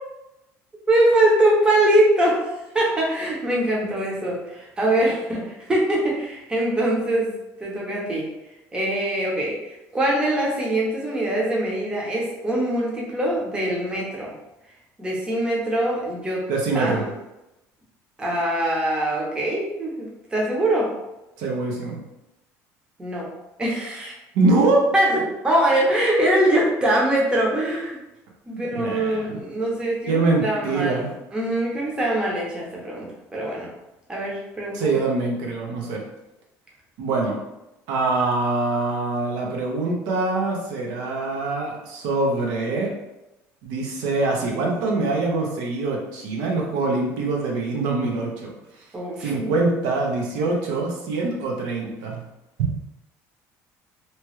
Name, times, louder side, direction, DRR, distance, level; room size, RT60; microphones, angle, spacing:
voice 1, 0.9-7.3 7.6-8.3 8.7-14.3 15.0-16.5 16.7-17.1 18.2-20.9 23.0-23.3 23.6-24.1 24.9-28.0 28.5-31.1 31.3-33.7 34.1-35.0 48.9-49.5, right 1 dB, 15° right, -3 dB, 0.7 m, -23 dB
voice 2, 16.5-17.1 21.4-22.0 24.3-24.9 28.5-29.4 30.1-31.1 34.7-36.0 37.0-37.3 37.9-42.9 43.6-48.5 49.2-52.2 52.6-52.7, right 3 dB, 85° right, 0 dB, 0.7 m, -24 dB
2.8 x 2.3 x 3.0 m, 0.94 s
cardioid pair, 145°, 7 cm